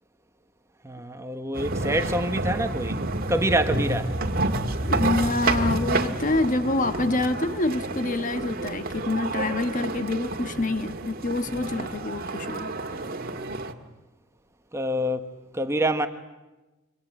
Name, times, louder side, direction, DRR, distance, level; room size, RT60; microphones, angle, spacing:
voice 1, 0.8-3.0 3.3-4.1 11.5-11.7 13.3-13.7 14.7-15.3 15.5-16.1, right 1 dB, 15° right, 1.2 m, -26 dB
sound 1, 1.5-13.7, right 2 dB, 45° right, 1.9 m, -29 dB
voice 2, 4.8-12.7, left 2 dB, 40° left, 1.3 m, -26 dB
27.5 x 24.5 x 8.8 m
head